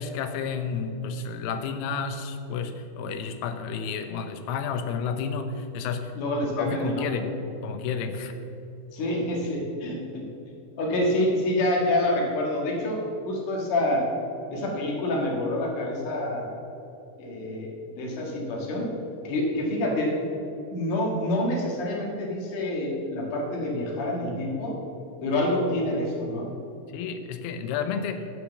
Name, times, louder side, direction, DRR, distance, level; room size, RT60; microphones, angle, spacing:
voice 1, 0.0-6.2 6.6-7.3 7.6-8.4 26.9-28.3, left 6 dB, 80° left, 8 dB, 2.6 m, -31 dB
voice 2, 6.2-7.2 8.9-10.2 10.8-13.0 13.3-14.1 14.5-16.5 17.2-18.9 19.2-20.1 20.7-24.8 25.2-26.5, left 1 dB, 55° left, -1 dB, 2.6 m, -27 dB
12.0 x 5.0 x 7.0 m, 2.8 s
omnidirectional pair, 5.0 m